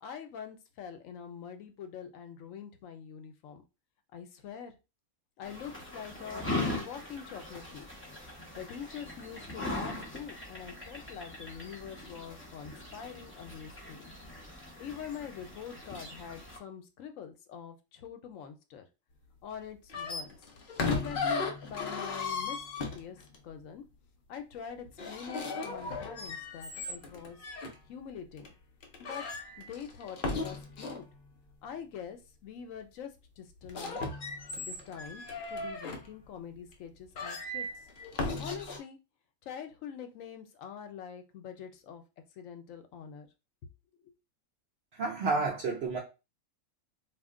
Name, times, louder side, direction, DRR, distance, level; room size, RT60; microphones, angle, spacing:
voice 1, 0.0-3.6 4.1-4.8 5.4-6.5 6.7-7.9 8.5-14.1 14.8-18.8 19.4-20.3 20.9-23.2 23.4-23.8 24.3-27.4 27.9-28.5 29.0-29.2 29.6-31.0 31.6-33.1 33.4-34.0 34.6-35.2 35.5-37.7 38.4-39.0 39.5-42.0 42.4-43.3 44.0-44.1, left 8 dB, 75° left, 0.9 m, -44 dB
sound 1, 5.4-16.6, left 2 dB, 10° left, 0.8 m, -40 dB
sound 2, 19.9-23.4 24.8-27.7 28.4-28.5 28.8-31.1 33.6-36.1 36.7-36.8 37.1-38.8, left 3 dB, 55° left, 0.6 m, -36 dB
voice 2, 44.9-46.0, right 3 dB, 60° right, 0.7 m, -30 dB
2.5 x 2.1 x 3.5 m
omnidirectional pair, 1.4 m